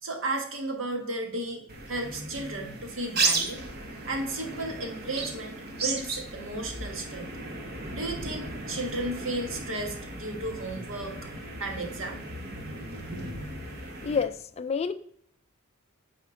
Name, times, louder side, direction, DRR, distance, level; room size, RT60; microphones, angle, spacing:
voice 1, 0.0-3.6 4.0-7.4 7.9-12.2, right 2 dB, 65° right, 3 dB, 1.4 m, -34 dB
sound 1, 1.7-14.2, right 3 dB, 50° right, 1.2 m, -35 dB
voice 2, 14.0-14.9, left 5 dB, 30° left, 11 dB, 0.3 m, -28 dB
9.2 x 4.3 x 3.7 m, 0.66 s
head